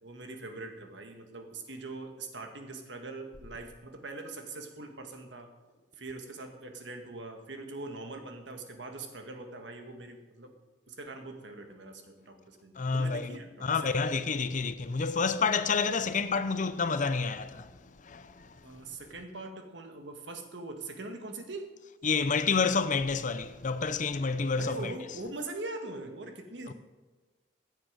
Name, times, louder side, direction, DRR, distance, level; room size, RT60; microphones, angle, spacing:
voice 1, 0.0-5.5 6.0-10.5 10.9-14.3 18.6-21.7 24.6-26.7, right 2 dB, 70° right, 1.7 m, -42 dB
voice 2, 12.8-18.6 22.0-24.9 26.7-26.8, left 4 dB, 45° left, 0.7 m, -29 dB
15.5 x 8.8 x 5.1 m
head